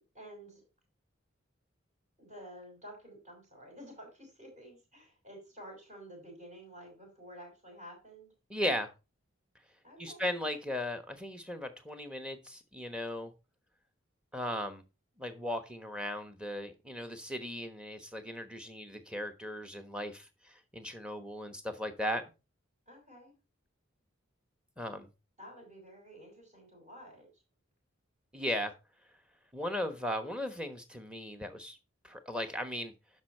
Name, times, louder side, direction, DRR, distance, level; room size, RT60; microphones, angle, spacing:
voice 1, 0.1-0.6 2.2-8.3 9.8-10.3 22.9-23.4 25.4-27.3, equal, 35° right, 5.7 m, -51 dB
voice 2, 8.5-8.9 10.0-13.3 14.3-14.8 15.2-22.2 24.8-25.1 28.3-28.7 29.5-31.8 32.0-32.9, left 1 dB, 5° right, 1.1 m, -37 dB
11.5 x 5.4 x 4.3 m
head